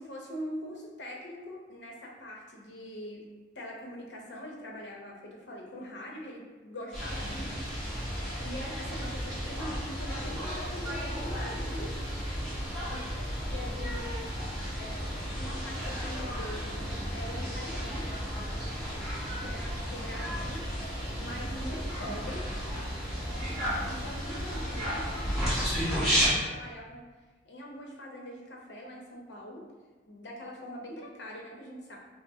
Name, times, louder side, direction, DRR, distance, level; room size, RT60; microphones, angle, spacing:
voice 1, 0.0-3.3 3.5-7.5 7.9-8.0 8.4-12.0 12.9-13.0 13.4-14.3 14.8-15.1 15.4-16.8 17.1-18.2 18.6-20.7 21.1-22.5 22.9-27.1 27.4-29.7 30.1-32.0, equal, 75° left, -1 dB, 0.7 m, -43 dB
sound 1, 6.9-26.3, equal, ahead, 1.4 m, -33 dB
5.3 x 2.0 x 2.6 m, 1.2 s
head